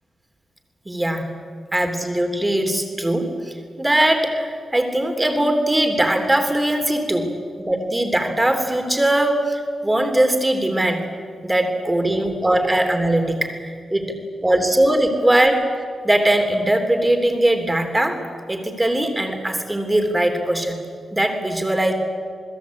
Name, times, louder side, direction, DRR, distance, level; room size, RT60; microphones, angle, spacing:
voice 1, 0.8-1.3 1.7-7.3 7.6-11.0 11.4-13.6 13.9-14.1 14.4-15.7 16.0-18.2 18.5-20.8 21.1-21.9, right 1 dB, 10° right, 5 dB, 3.3 m, -20 dB
28.5 x 20.5 x 8.5 m, 2.1 s
wide cardioid pair, 140°, 0 cm